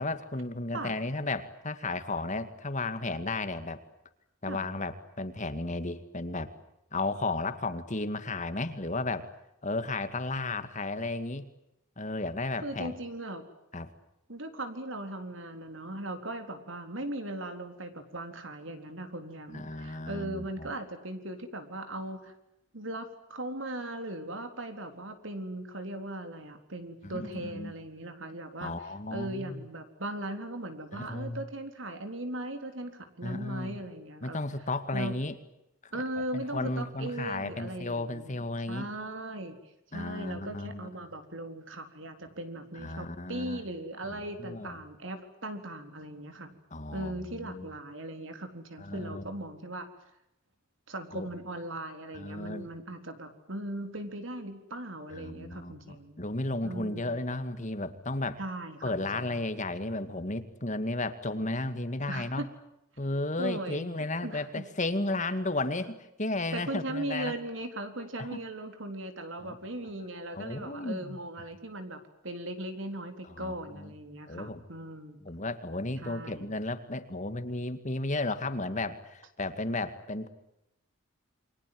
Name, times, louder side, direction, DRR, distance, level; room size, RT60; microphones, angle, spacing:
voice 1, 0.0-3.8 4.4-6.5 6.9-9.3 9.6-11.5 12.0-12.9 13.7-13.9 19.5-20.7 27.0-27.7 28.6-29.6 30.9-31.4 33.2-33.8 34.2-35.4 35.8-36.0 36.3-38.9 39.9-40.9 42.7-43.6 44.1-44.8 46.7-47.7 48.8-49.2 51.1-51.3 52.1-52.7 55.1-58.4 58.8-62.5 63.0-67.3 68.2-68.4 69.4-69.6 70.3-71.2 73.4-73.9 74.3-74.6 75.2-80.3, left 2 dB, 35° left, 10 dB, 2.1 m, -34 dB
voice 2, 12.6-13.4 14.3-22.3 22.7-28.7 29.1-34.4 34.9-35.1 35.9-38.3 38.7-39.6 39.9-46.6 46.9-49.9 50.9-56.2 56.6-57.2 58.4-59.3 62.1-62.5 63.4-64.6 66.5-75.2 76.0-76.5, right 1 dB, 65° right, 7 dB, 4.0 m, -38 dB
29.0 x 24.5 x 7.8 m, 0.85 s
head